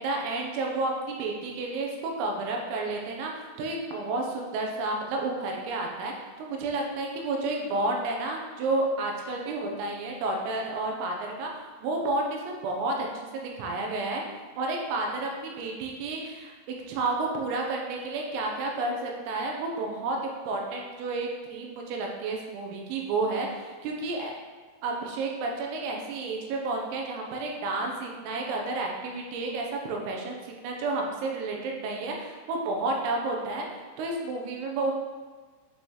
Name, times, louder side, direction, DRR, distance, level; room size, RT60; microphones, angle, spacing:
voice 1, 0.0-13.1 13.3-14.2 14.6-16.5 16.9-24.3 24.8-34.9, right 2 dB, 85° right, 0 dB, 3.7 m, -31 dB
10.0 x 5.5 x 3.2 m, 1.4 s
omnidirectional pair, 5.9 m